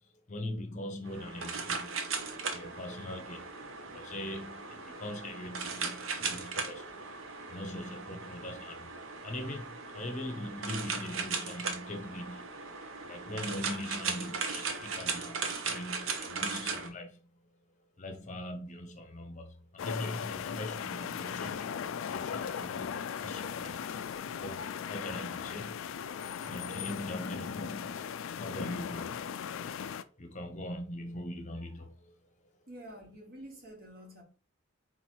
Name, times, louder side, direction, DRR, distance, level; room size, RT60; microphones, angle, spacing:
voice 1, 0.3-1.9 2.5-3.5 3.9-6.9 7.5-8.9 9.2-12.5 13.0-17.2 18.0-25.8 26.5-28.0 28.4-29.2 30.2-32.1, left 1 dB, 35° left, 0.6 m, -41 dB
sound 1, 1.1-16.9, right 4 dB, 70° right, 0.8 m, -38 dB
sound 2, 19.8-30.0, left 7 dB, 65° left, 0.3 m, -38 dB
voice 2, 32.7-34.2, right 1 dB, 45° right, 1.2 m, -48 dB
3.9 x 2.9 x 4.5 m
head